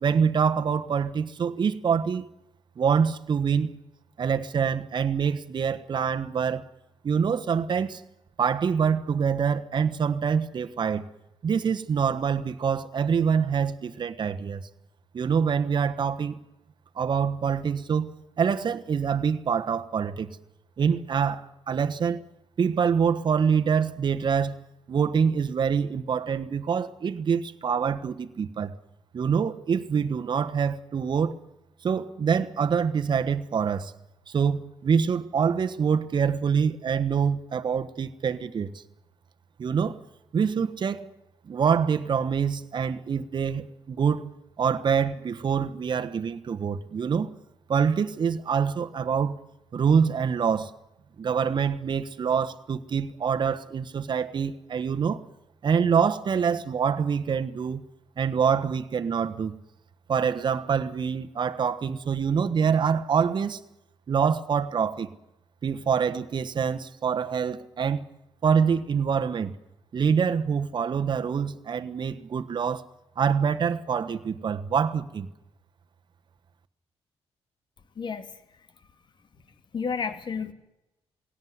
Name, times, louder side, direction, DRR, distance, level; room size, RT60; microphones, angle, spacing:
voice 1, 0.0-2.3 2.8-3.7 4.2-6.6 7.0-8.0 8.4-11.0 11.4-14.7 15.1-16.4 17.0-18.1 18.4-20.3 20.8-22.2 22.6-24.6 24.9-28.7 29.1-31.3 31.8-33.9 34.3-38.7 39.6-40.0 40.3-41.1 41.4-44.3 44.6-47.3 47.7-49.4 49.7-50.7 51.2-55.2 55.6-57.8 58.2-59.5 60.1-63.6 64.1-65.1 65.6-68.0 68.4-69.5 69.9-72.8 73.2-75.3, right 6 dB, 45° right, 1.2 m, -25 dB
voice 2, 78.0-78.3 79.7-80.5, left 5 dB, 45° left, 2.1 m, -31 dB
20.5 x 17.0 x 9.5 m
cardioid pair, 125°, 11 cm